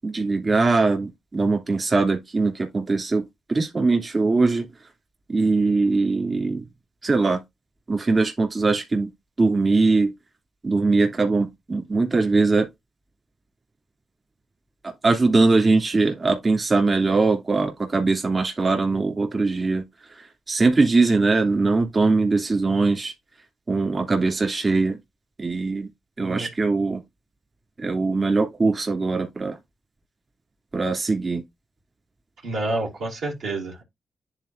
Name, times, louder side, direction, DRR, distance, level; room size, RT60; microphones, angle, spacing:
voice 1, 0.0-3.2 3.5-4.7 5.3-6.6 7.0-7.4 7.9-9.1 9.4-10.1 10.6-12.7 14.8-19.8 20.1-23.1 23.7-25.0 25.4-25.9 26.2-27.0 27.8-29.6 30.7-31.4, right 3 dB, 45° right, 2.7 m, -21 dB
voice 2, 32.4-33.8, right 2 dB, 85° right, 2.9 m, -29 dB
10.5 x 4.0 x 2.6 m
supercardioid pair, 55°, 0 cm